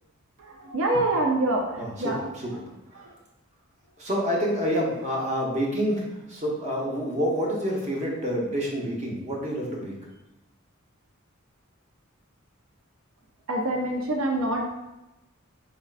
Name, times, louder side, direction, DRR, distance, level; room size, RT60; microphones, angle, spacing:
voice 1, 0.4-2.2 3.0-3.1 13.5-14.6, right 2 dB, 75° right, 0 dB, 0.5 m, -26 dB
voice 2, 1.8-2.6 2.9-3.0 4.0-9.9, equal, 35° right, -3 dB, 0.8 m, -28 dB
4.3 x 3.5 x 2.4 m, 0.97 s
head